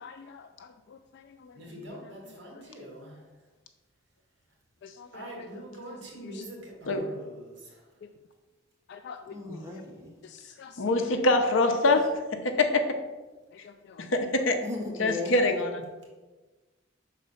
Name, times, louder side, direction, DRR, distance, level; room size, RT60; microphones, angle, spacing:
voice 1, 0.0-1.8 2.5-2.9 4.8-5.5 5.9-6.0 6.2-6.4 8.0-8.1 8.9-9.6 10.2-11.2 13.5-14.1, left 6 dB, 60° left, 7 dB, 0.3 m, -48 dB
voice 2, 1.6-3.3 5.1-7.8 11.8-12.0, equal, 60° right, -2 dB, 1.8 m, -43 dB
voice 3, 9.3-10.1 14.6-15.6, left 3 dB, 15° right, -1 dB, 1.2 m, -37 dB
voice 4, 10.8-12.0 12.6-12.8 14.1-14.6 15.0-15.7, left 2 dB, 75° left, 5 dB, 0.8 m, -23 dB
5.4 x 4.2 x 5.5 m, 1.2 s
head